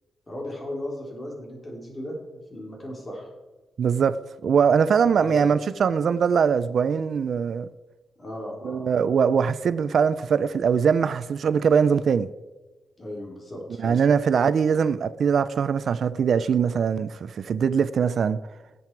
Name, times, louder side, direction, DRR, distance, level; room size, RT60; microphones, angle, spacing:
voice 1, 0.3-3.3 5.2-5.5 8.2-8.8 13.0-14.0, left 1 dB, 25° left, 3.4 m, -36 dB
voice 2, 3.8-4.2 4.4-7.7 8.6-12.3 13.8-18.4, right 6 dB, 55° right, 0.4 m, -22 dB
18.0 x 7.6 x 4.6 m
wide cardioid pair, 150°, 0 cm